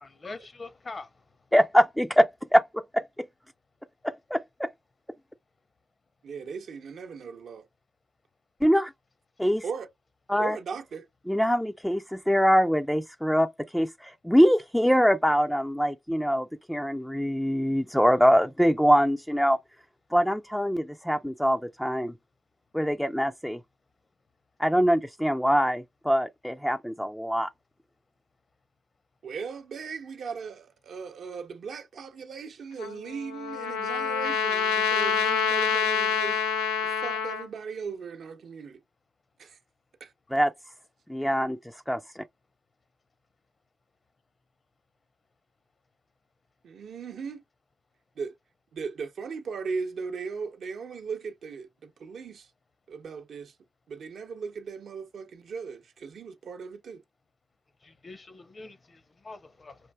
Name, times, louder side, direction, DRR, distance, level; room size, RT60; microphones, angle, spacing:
voice 1, 0.0-1.1 57.8-59.8, left 3 dB, 35° left, 0.8 m, -43 dB
voice 2, 1.5-3.3 4.0-4.7 8.6-8.9 9.4-9.6 10.3-10.6 11.3-19.6 20.1-22.1 22.7-23.6 24.6-27.5 40.3-40.5 41.1-41.6 41.9-42.2, equal, 5° left, 0.4 m, -24 dB
voice 3, 6.2-7.7 9.6-9.9 10.4-11.1 29.2-36.4 36.8-38.8 39.4-39.6 40.0-40.1 46.6-47.4 48.2-48.3 48.7-52.5 52.9-53.5 53.9-57.0, right 5 dB, 60° right, 0.7 m, -38 dB
Trumpet, 32.8-37.5, left 6 dB, 90° left, 0.4 m, -27 dB
4.3 x 2.6 x 2.2 m
supercardioid pair, 55°, 0 cm